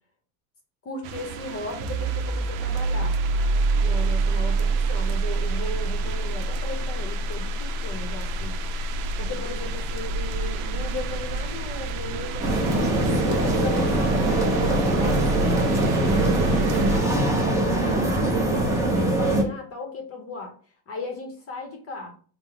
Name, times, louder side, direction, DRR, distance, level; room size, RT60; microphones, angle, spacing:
voice 1, 0.8-3.2 3.8-8.6 9.2-13.0 13.3-18.5 18.9-20.6 20.9-22.1, left 3 dB, 30° left, 3 dB, 0.7 m, -36 dB
sound 1, 1.0-17.0, right 5 dB, 70° right, 0.6 m, -32 dB
sound 2, 1.8-13.2, right 3 dB, 35° right, 0.8 m, -27 dB
sound 3, 12.4-19.4, right 1 dB, 5° right, 0.6 m, -22 dB
3.8 x 2.1 x 4.4 m, 0.43 s
cardioid pair, 150°, 48 cm